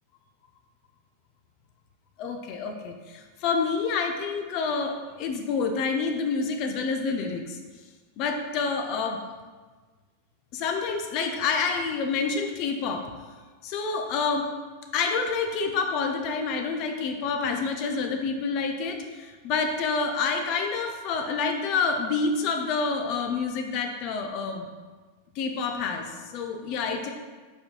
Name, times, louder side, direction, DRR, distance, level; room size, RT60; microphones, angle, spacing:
voice 1, 2.2-7.6 8.2-9.2 10.5-13.1 13.6-14.5 14.9-24.7 25.4-27.1, left 5 dB, 40° left, 4 dB, 0.4 m, -28 dB
4.9 x 4.3 x 2.2 m, 1.4 s
figure-of-eight pair, 90°, 0 cm